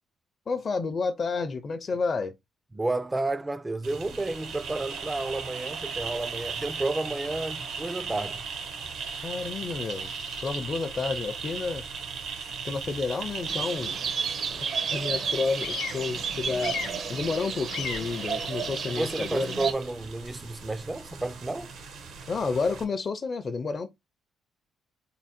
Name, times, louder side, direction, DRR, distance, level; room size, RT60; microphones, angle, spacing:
voice 1, 0.5-2.3 9.2-10.1 10.4-11.8 12.6-14.0 14.6-16.8 17.1-19.5 22.3-23.9, left 4 dB, 45° left, 0.5 m, -30 dB
voice 2, 2.7-8.5 18.9-21.7, right 2 dB, 15° right, 0.4 m, -31 dB
sound 1, 3.8-22.8, right 5 dB, 80° right, 1.1 m, -38 dB
Bird vocalization bird call bird song, 4.1-22.8, left 6 dB, 85° left, 0.8 m, -45 dB
sound 2, 13.5-19.7, right 6 dB, 60° right, 0.7 m, -32 dB
3.6 x 2.2 x 4.3 m
cardioid pair, 90°, 0 cm